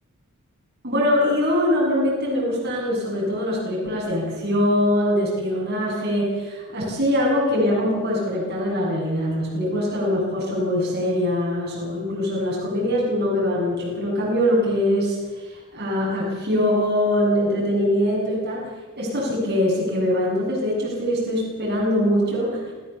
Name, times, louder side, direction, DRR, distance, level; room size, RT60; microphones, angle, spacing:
voice 1, 0.8-15.2 15.5-18.7 19.0-22.7, left 1 dB, 50° right, -5 dB, 7.6 m, -23 dB
27.5 x 15.5 x 7.2 m, 1.3 s
head